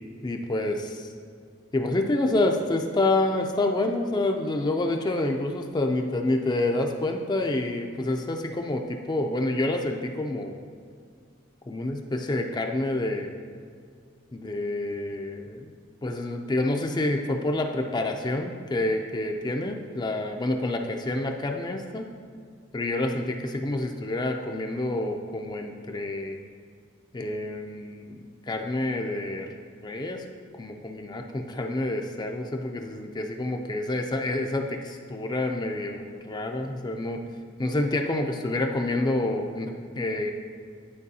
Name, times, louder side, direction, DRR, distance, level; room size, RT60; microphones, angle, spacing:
voice 1, 0.2-1.1 1.7-10.5 11.7-13.3 14.3-15.7 16.0-22.1 22.7-26.4 27.1-28.2 28.5-29.5 29.8-30.2 30.6-37.2 37.6-40.3, left 2 dB, 20° left, 3 dB, 0.4 m, -28 dB
10.5 x 4.7 x 2.7 m, 2.2 s
head